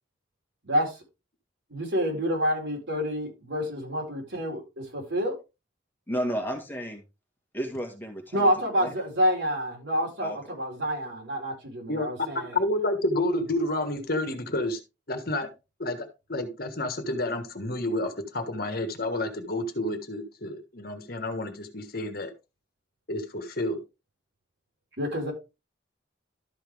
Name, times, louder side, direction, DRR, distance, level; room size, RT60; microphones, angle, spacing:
voice 1, 0.6-1.0 1.7-5.3 8.3-12.6 25.0-25.3, equal, 70° right, 0 dB, 4.4 m, -28 dB
voice 2, 6.1-7.0 7.5-8.5 8.8-8.9 10.2-10.4, equal, 10° left, 2 dB, 1.9 m, -32 dB
voice 3, 12.5-14.8 15.1-15.5 15.8-22.3 23.1-23.8, left 1 dB, 50° left, 7 dB, 1.5 m, -30 dB
12.5 x 5.7 x 3.5 m, 0.27 s
head